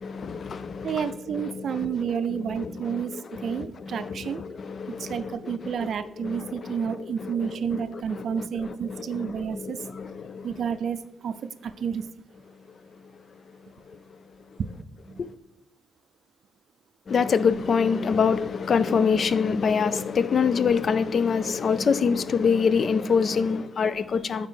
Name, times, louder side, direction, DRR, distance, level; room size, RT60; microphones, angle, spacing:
voice 1, 0.0-5.9 6.2-7.8 8.1-10.7 12.8-14.2 14.5-14.6 15.2-15.3 17.1-24.5, left 6 dB, 50° left, 0.4 m, -26 dB
voice 2, 0.8-4.4 5.0-9.8 10.4-11.4 11.6-12.0 15.1-15.2, right 7 dB, 65° right, 0.4 m, -30 dB
9.2 x 4.1 x 4.3 m
cardioid pair, 105°, 0 cm